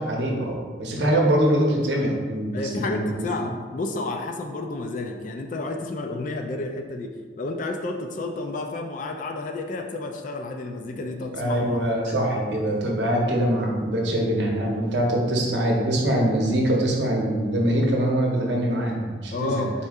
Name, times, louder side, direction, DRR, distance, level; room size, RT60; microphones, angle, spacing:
voice 1, 0.0-3.3 11.3-19.6, right 1 dB, 65° right, -1 dB, 0.8 m, -23 dB
voice 2, 2.5-7.1 7.4-11.8 12.1-12.2 19.3-19.7, left 2 dB, 40° left, 4 dB, 0.3 m, -31 dB
4.2 x 2.7 x 3.4 m, 1.5 s
head